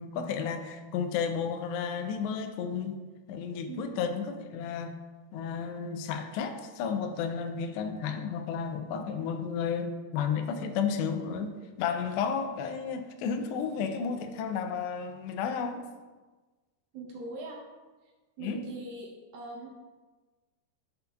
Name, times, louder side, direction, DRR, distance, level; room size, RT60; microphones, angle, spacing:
voice 1, 0.0-3.0 3.3-5.0 5.3-15.9 18.4-18.6, left 6 dB, 90° left, 7 dB, 2.8 m, -32 dB
voice 2, 3.7-4.1 16.9-17.6 18.4-19.8, right 2 dB, 75° right, -2 dB, 2.3 m, -41 dB
11.5 x 5.3 x 2.3 m, 1.3 s
omnidirectional pair, 4.9 m